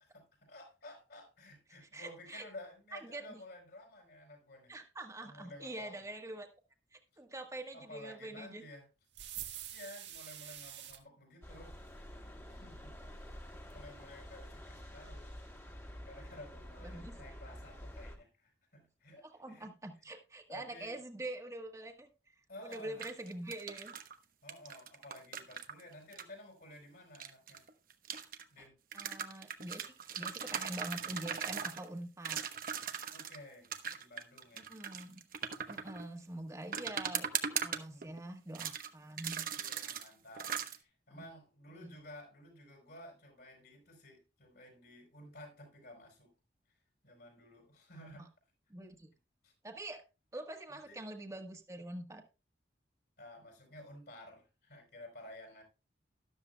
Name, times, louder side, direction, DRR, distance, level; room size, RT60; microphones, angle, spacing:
voice 1, 0.0-4.7 5.2-6.0 7.7-8.9 9.7-12.1 12.5-13.1 13.4-15.3 16.0-19.7 20.5-21.0 22.5-23.0 24.4-27.6 28.5-28.8 33.1-34.7 37.9-38.2 39.5-46.3 47.0-48.3 49.4-49.5 50.7-51.0 53.2-55.6, left 1 dB, 65° left, 4.8 m, -53 dB
voice 2, 1.9-2.5 2.9-3.4 4.7-6.5 6.9-8.6 16.8-17.1 19.2-22.1 22.6-23.9 28.6-28.7 28.9-32.4 34.5-35.2 35.7-39.4 41.1-41.2 41.8-41.9 48.0-48.1 48.7-49.1 49.6-50.0 50.3-52.2, right 1 dB, 15° right, 1.4 m, -45 dB
sound 1, 9.1-11.0, right 11 dB, 90° right, 1.7 m, -45 dB
sound 2, 11.4-18.2, equal, 15° left, 1.7 m, -49 dB
sound 3, 22.7-24.1 24.5-26.2 27.2-28.4 28.9-31.9 32.2-33.4 33.7-36.1 36.7-38.2 38.5-38.9 39.2-40.1 40.4-40.8, right 8 dB, 55° right, 1.0 m, -39 dB
13.0 x 12.0 x 2.3 m
head